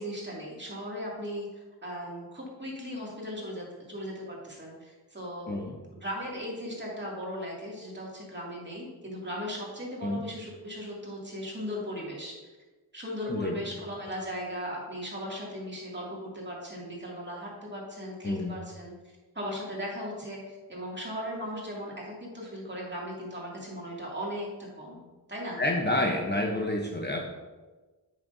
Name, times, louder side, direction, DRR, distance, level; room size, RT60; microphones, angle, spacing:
voice 1, 0.0-5.6 5.9-12.3 12.9-18.9 19.3-25.0 25.3-25.6, equal, 25° right, -4 dB, 2.4 m, -37 dB
voice 2, 5.5-5.8 10.0-10.2 13.3-13.5 18.2-18.6 25.6-27.2, left 1 dB, 25° left, 0 dB, 0.9 m, -29 dB
8.4 x 6.4 x 2.7 m, 1.2 s
wide cardioid pair, 60°, 40 cm